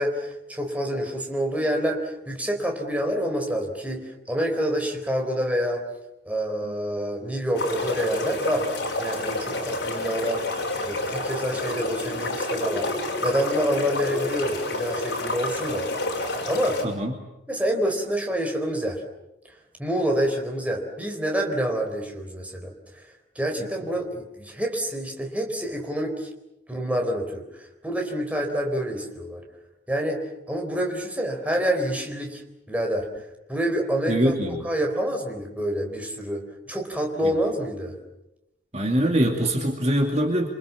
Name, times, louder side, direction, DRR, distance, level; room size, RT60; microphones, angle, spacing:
voice 1, 0.0-5.8 6.3-8.7 9.0-10.6 10.8-12.9 13.2-15.9 16.5-16.8 17.5-19.0 19.8-23.1 23.4-26.3 26.7-29.4 29.9-32.4 32.7-33.1 33.5-34.4 34.6-38.0, equal, 5° right, 2 dB, 4.1 m, -27 dB
sound 1, 7.6-16.9, left 2 dB, 55° left, 6.2 m, -29 dB
voice 2, 16.8-17.1 23.6-23.7 34.1-34.6 37.2-37.3 38.7-40.5, right 1 dB, 35° right, 2 dB, 2.6 m, -23 dB
28.0 x 26.0 x 7.3 m, 0.90 s
head